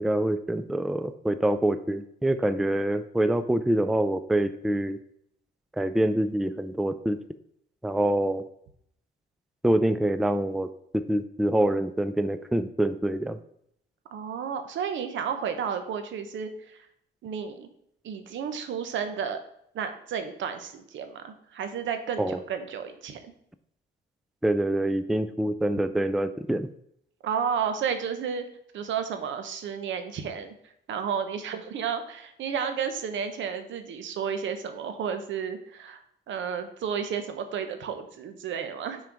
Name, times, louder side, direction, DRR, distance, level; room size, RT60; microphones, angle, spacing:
voice 1, 0.0-5.0 5.8-7.2 7.8-8.4 9.6-10.7 10.9-13.4 22.2-22.4 24.4-26.7, right 1 dB, ahead, 11 dB, 0.4 m, -25 dB
voice 2, 14.1-16.9 17.2-17.7 18.0-19.4 19.7-23.3 27.2-28.4 28.7-30.5 30.9-36.0 36.3-39.0, right 7 dB, 70° right, 8 dB, 1.0 m, -32 dB
5.9 x 4.5 x 5.0 m, 0.72 s
cardioid pair, 90°, 20 cm